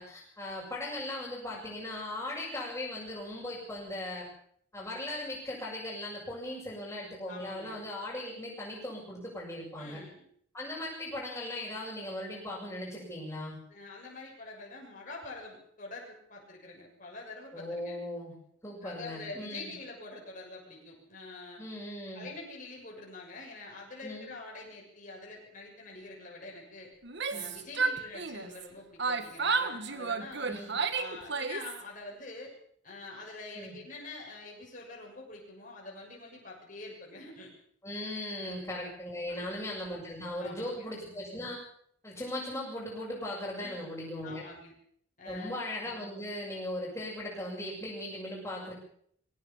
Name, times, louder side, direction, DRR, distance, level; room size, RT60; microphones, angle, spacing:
voice 1, 0.0-4.3 4.7-10.0 10.5-13.6 17.5-18.3 18.6-19.7 21.6-22.2 24.0-24.3 27.3-27.4 30.4-30.7 33.5-33.7 37.8-41.6 42.0-44.4 45.2-48.7, left 1 dB, 15° left, -7 dB, 6.8 m, -38 dB
voice 2, 7.3-7.8 9.8-10.2 13.7-17.9 18.8-21.6 22.1-26.9 27.3-30.5 30.9-32.5 32.8-37.5 38.4-38.6 39.3-39.6 40.4-40.9 43.6-43.8 44.2-44.7 45.2-45.6, left 2 dB, 40° left, -2 dB, 6.8 m, -46 dB
Yell, 27.0-28.7 29.0-31.8, right 4 dB, 55° right, 1.7 m, -32 dB
22.0 x 17.0 x 7.3 m, 0.65 s
head